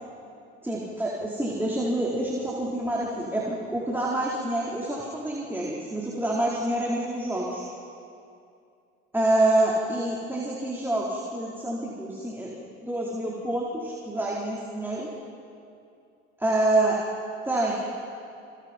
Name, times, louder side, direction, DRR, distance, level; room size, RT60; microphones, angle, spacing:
voice 1, 0.6-7.7 9.1-12.5 12.8-15.1 16.4-17.0 17.4-17.7, right 1 dB, 5° right, -5 dB, 4.4 m, -27 dB
28.5 x 28.0 x 4.6 m, 2.5 s
hypercardioid pair, 70°, 33 cm